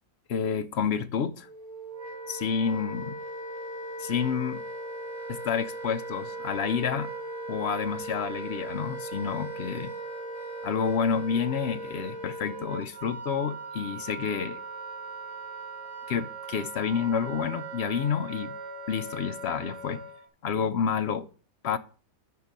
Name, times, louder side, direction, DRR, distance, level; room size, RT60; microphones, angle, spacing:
voice 1, 0.3-1.5 2.3-3.2 4.0-4.6 5.3-7.1 7.5-9.9 10.6-14.6 16.1-18.6 18.9-20.1 20.4-21.3 21.6-21.8, left 7 dB, 60° left, 0.8 m, -29 dB
Wind instrument woodwind instrument, 1.4-20.3, right 2 dB, 25° right, 2.0 m, -39 dB
10.5 x 3.9 x 7.4 m
omnidirectional pair, 1.4 m